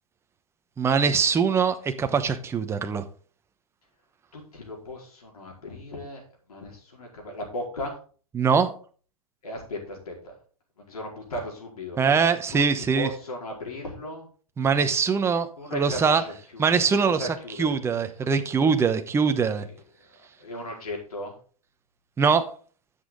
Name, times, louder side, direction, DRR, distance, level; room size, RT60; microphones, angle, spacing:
voice 1, 0.8-3.1 8.3-8.7 12.0-13.1 14.6-15.5 15.7-16.2 16.6-19.7 22.2-22.5, right 5 dB, 15° right, 1.0 m, -22 dB
voice 2, 4.3-6.2 6.5-8.0 9.4-10.3 10.8-12.0 12.5-14.3 15.6-17.7 19.5-19.7 20.4-21.4, left 1 dB, 85° left, 4.5 m, -36 dB
10.0 x 7.4 x 3.9 m
hypercardioid pair, 125°, 19 cm